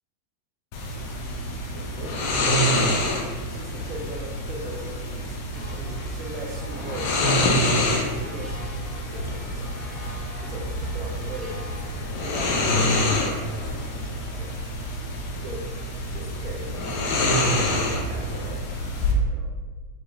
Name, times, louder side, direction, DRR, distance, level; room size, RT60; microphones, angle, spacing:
sound 1, 0.7-19.1, left 1 dB, 45° left, 0.4 m, -27 dB
voice 1, 2.0-2.3 2.8-9.9 10.4-11.6 12.2-14.7 15.4-15.7 16.1-16.8 17.1-19.5, right 1 dB, 35° right, 0 dB, 0.4 m, -40 dB
sound 2, 5.5-12.1, equal, 5° left, 0.9 m, -45 dB
3.0 x 2.1 x 2.2 m, 1.4 s
figure-of-eight pair, 90°, 0 cm